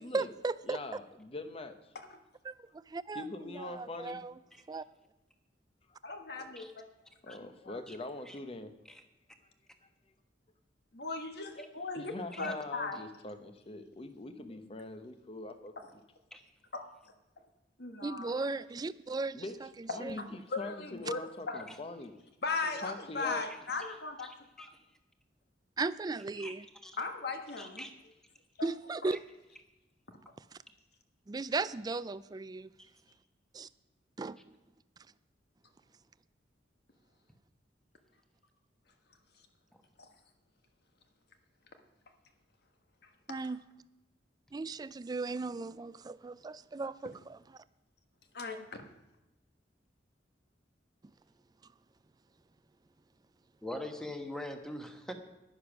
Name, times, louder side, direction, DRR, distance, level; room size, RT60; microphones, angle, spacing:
voice 1, 0.1-0.8 2.5-4.3 4.7-4.8 18.0-19.4 19.8-20.2 25.8-26.7 28.6-29.2 31.3-32.7 33.5-33.7 34.2-34.4 43.3-43.6 44.5-47.4, right 3 dB, 20° right, 16 dB, 0.3 m, -36 dB
voice 2, 0.6-1.8 3.1-4.2 7.2-8.7 11.9-15.7 19.3-19.6 19.8-20.2 20.6-22.1 22.8-23.4, left 2 dB, 30° left, 9 dB, 0.8 m, -43 dB
voice 3, 6.0-6.9 7.3-7.4 7.6-7.8 10.9-13.0 15.8-15.9 16.7-16.8 17.8-18.4 20.2-20.3 20.5-21.7 22.4-24.3 24.6-24.7 27.0-27.9 28.6-28.7 40.0-40.1 43.3-43.5 48.3-48.6, left 3 dB, 60° left, 6 dB, 1.3 m, -38 dB
voice 4, 24.2-24.7 26.4-26.5 26.8-27.0 27.6-27.9 53.6-55.1, left 1 dB, 5° left, 6 dB, 1.1 m, -43 dB
10.5 x 10.0 x 6.0 m, 0.99 s
head